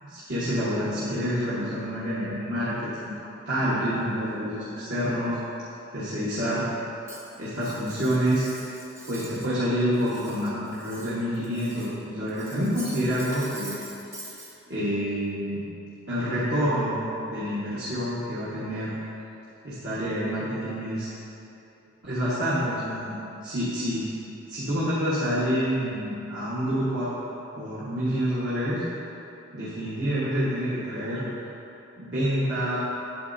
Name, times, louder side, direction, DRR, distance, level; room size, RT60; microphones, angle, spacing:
voice 1, 0.0-3.1 3.4-5.4 5.9-6.6 7.4-8.7 9.1-13.8 14.7-15.6 16.1-18.9 19.6-21.1 22.0-23.2 23.4-24.0 24.5-27.1 27.6-28.8 29.5-31.2 32.0-32.8, equal, 50° right, -10 dB, 1.4 m, -27 dB
Cutlery silverware, 7.1-9.5 9.8-12.0 12.3-14.5, right 2 dB, 15° right, 0.7 m, -44 dB
9.3 x 7.7 x 2.7 m, 3.0 s
head